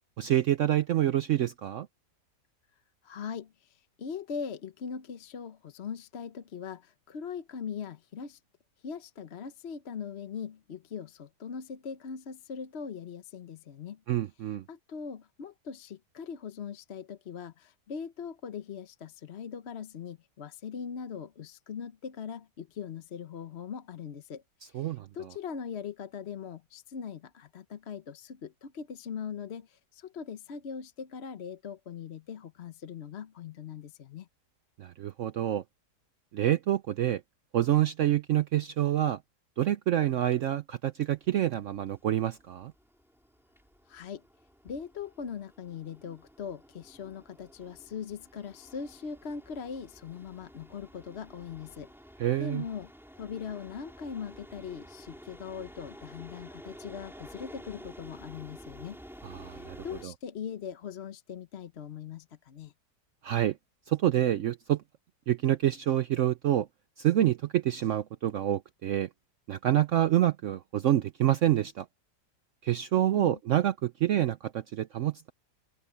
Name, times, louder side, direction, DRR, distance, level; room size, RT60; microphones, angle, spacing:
voice 1, 0.2-1.9 14.1-14.6 24.7-25.1 34.8-35.6 36.3-37.2 37.5-39.2 39.6-42.7 52.2-52.6 59.2-59.8 60.0-60.1 63.2-63.6 63.9-64.8 65.3-66.7 67.0-69.1 69.5-71.9 72.6-75.3, right 12 dB, 70° right, 0.7 m, -27 dB
voice 2, 3.0-8.4 8.8-14.0 14.7-34.3 43.9-44.2 44.6-51.9 52.4-52.9 53.2-62.7 73.1-73.4, left 7 dB, 50° left, 0.9 m, -41 dB
sound 1, 41.1-60.0, equal, ahead, 4.7 m, -51 dB
open air
omnidirectional pair, 1.8 m